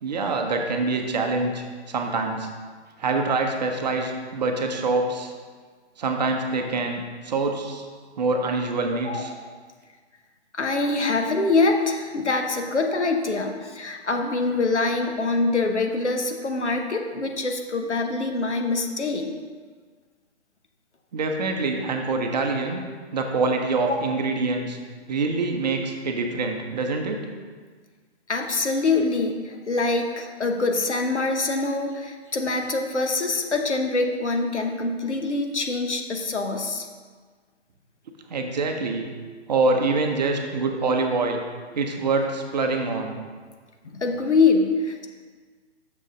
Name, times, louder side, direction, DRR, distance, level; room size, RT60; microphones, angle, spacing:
voice 1, 0.0-2.5 3.0-5.3 6.0-7.8 8.2-9.3 21.1-22.8 23.1-24.8 25.1-27.2 38.3-39.1 39.5-41.4 41.7-43.2, right 3 dB, 40° right, 3 dB, 0.7 m, -25 dB
voice 2, 9.0-9.5 10.5-19.3 23.9-24.0 28.3-36.9 43.9-45.1, left 3 dB, 80° left, 4 dB, 0.9 m, -24 dB
6.5 x 6.4 x 3.7 m, 1.5 s
figure-of-eight pair, 135°, 34 cm